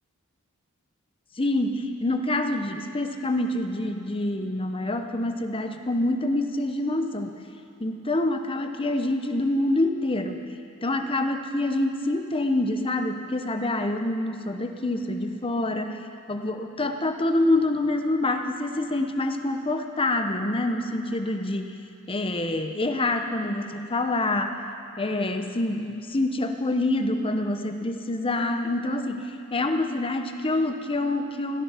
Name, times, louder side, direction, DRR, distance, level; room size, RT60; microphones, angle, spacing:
voice 1, 1.4-7.4 7.8-10.5 10.8-16.0 16.3-21.8 22.1-24.6 25.0-31.6, left 2 dB, 25° left, 6 dB, 0.9 m, -26 dB
17.0 x 14.0 x 5.7 m, 2.7 s
head